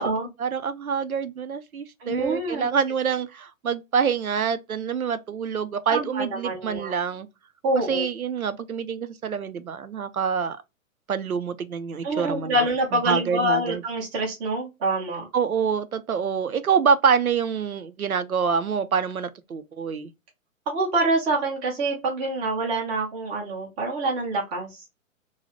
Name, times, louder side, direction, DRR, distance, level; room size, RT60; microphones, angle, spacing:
voice 1, 0.4-7.3 7.9-10.6 11.1-12.6 13.1-13.8 15.3-20.1, right 6 dB, 85° right, 0.6 m, -26 dB
voice 2, 2.0-2.7 5.9-6.9 7.6-8.1 12.0-15.3 20.7-24.8, right 2 dB, 15° right, 0.6 m, -26 dB
2.6 x 2.3 x 3.1 m
figure-of-eight pair, 115°, 41 cm